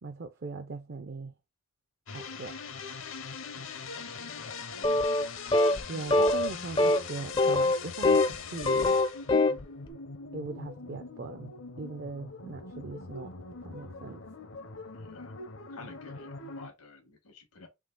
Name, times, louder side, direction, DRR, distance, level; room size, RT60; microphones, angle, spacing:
voice 1, 0.0-1.3 2.1-2.6 5.9-9.0 10.3-14.2, right 4 dB, 50° right, 0.4 m, -40 dB
sound 1, 2.1-16.7, left 4 dB, 60° left, 0.7 m, -42 dB
voice 2, 3.5-5.1 14.9-15.3 15.7-17.7, left 3 dB, 90° left, 1.5 m, -51 dB
sound 2, 4.8-5.3 5.5-5.8 6.1-6.5 6.8-7.0 7.4-8.4 8.6-9.6, left 2 dB, 20° left, 0.4 m, -23 dB
3.7 x 3.1 x 3.8 m
head